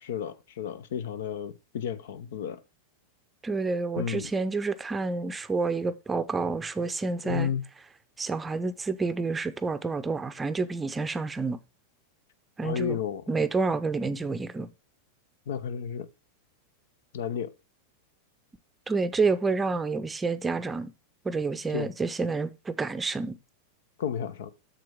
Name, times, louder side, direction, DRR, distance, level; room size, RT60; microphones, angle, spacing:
voice 1, 0.0-2.6 4.0-4.3 7.2-7.6 12.6-13.3 15.5-16.1 17.1-17.5 21.7-21.9 24.0-24.5, left 8 dB, 60° left, 0.7 m, -32 dB
voice 2, 3.4-7.5 8.2-11.6 12.6-13.0 13.3-14.7 18.9-20.9 21.2-23.4, right 4 dB, 15° right, 0.6 m, -29 dB
7.6 x 7.1 x 3.6 m
figure-of-eight pair, 90°, 0 cm